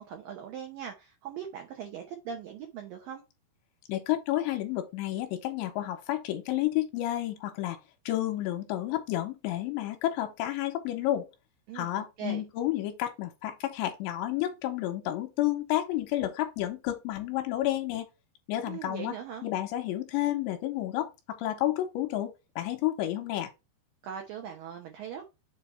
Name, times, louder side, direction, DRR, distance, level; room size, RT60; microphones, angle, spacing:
voice 1, 0.0-3.2 11.7-12.4 18.6-19.5 24.0-25.3, right 8 dB, 80° right, 2.0 m, -40 dB
voice 2, 3.9-7.8 8.1-11.3 11.7-18.1 18.5-19.1 19.4-23.5, left 14 dB, 80° left, 2.9 m, -31 dB
7.4 x 2.8 x 5.4 m
omnidirectional pair, 5.3 m